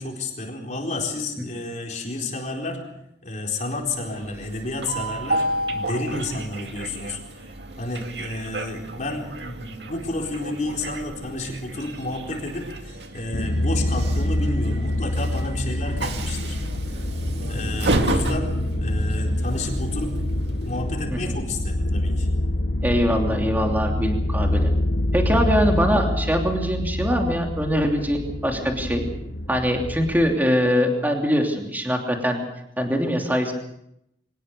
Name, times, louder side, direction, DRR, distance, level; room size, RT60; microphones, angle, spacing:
voice 1, 0.0-2.8 3.2-7.5 7.8-16.6 16.8-17.0 17.5-20.1 20.7-22.3, left 2 dB, 45° left, 0 dB, 4.1 m, -31 dB
Train, 3.8-21.1, right 1 dB, 70° right, 2.2 m, -32 dB
sound 1, 13.3-30.3, left 1 dB, 65° left, 1.3 m, -26 dB
voice 2, 22.8-24.7 25.1-29.0 29.5-32.4 32.8-33.5, equal, 10° right, 2 dB, 2.9 m, -23 dB
24.5 x 19.5 x 6.8 m, 0.77 s
head